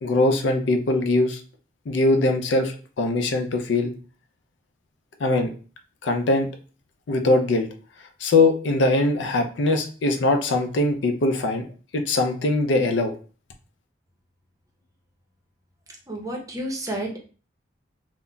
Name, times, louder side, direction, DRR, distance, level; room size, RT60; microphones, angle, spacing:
voice 1, 0.0-1.4 1.9-3.9 5.2-5.5 6.0-6.5 7.1-7.7 8.2-11.6 11.9-13.1, left 2 dB, 85° left, 6 dB, 0.4 m, -21 dB
voice 2, 16.1-17.2, right 1 dB, 20° right, 0 dB, 0.6 m, -30 dB
3.8 x 2.1 x 2.2 m, 0.38 s
head